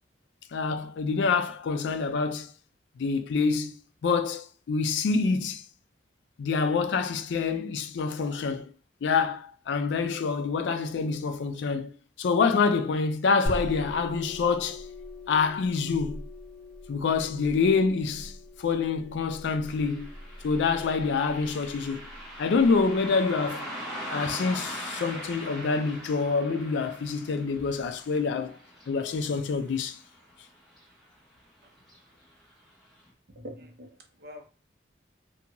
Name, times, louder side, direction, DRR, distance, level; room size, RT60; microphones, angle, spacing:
voice 1, 0.5-2.5 3.0-5.6 6.4-8.7 9.0-11.9 12.2-14.8 15.3-16.2 16.9-18.3 18.6-20.1 20.4-22.1 22.4-23.7 24.1-28.6 28.9-30.0, left 4 dB, 80° left, 0.3 m, -26 dB
sound 1, 13.5-22.8, left 1 dB, 40° left, 0.9 m, -40 dB
Car passing by, 19.6-30.5 30.8-30.9 31.8-32.0 32.4-32.5 33.0-33.1, equal, ahead, 0.8 m, -41 dB
voice 2, 33.3-34.5, equal, 55° right, 0.6 m, -45 dB
2.6 x 2.2 x 2.8 m
head